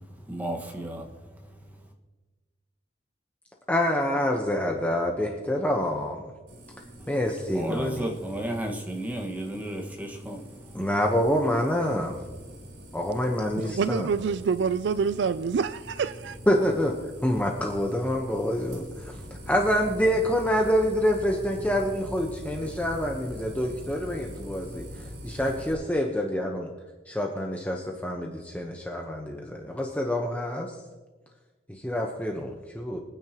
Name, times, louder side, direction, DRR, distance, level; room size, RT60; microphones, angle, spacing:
voice 1, 0.3-1.8 7.0-7.1 7.5-10.9, right 1 dB, 10° right, 1 dB, 1.6 m, -34 dB
voice 2, 3.7-6.3 7.1-8.1 10.7-12.2 12.9-14.1 16.5-19.2 19.5-26.7 27.1-30.7 31.7-33.0, equal, 10° left, 1 dB, 1.0 m, -27 dB
sound 1, 6.5-25.7, equal, 90° right, 4.0 m, -43 dB
voice 3, 13.6-16.4, right 5 dB, 70° right, 13 dB, 0.4 m, -27 dB
24.5 x 9.6 x 3.0 m, 1.3 s
head